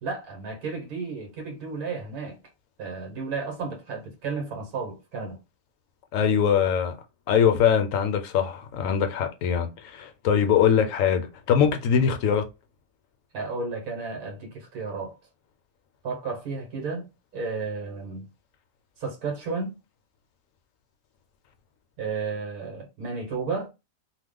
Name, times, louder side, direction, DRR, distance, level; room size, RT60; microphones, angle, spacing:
voice 1, 0.0-2.4 2.8-5.4 13.3-15.2 16.0-17.1 17.3-18.3 19.0-19.8 22.0-23.7, right 4 dB, 85° right, 1.5 m, -33 dB
voice 2, 6.1-6.9 7.3-12.5, left 8 dB, 70° left, 1.0 m, -22 dB
2.9 x 2.1 x 3.6 m
omnidirectional pair, 1.5 m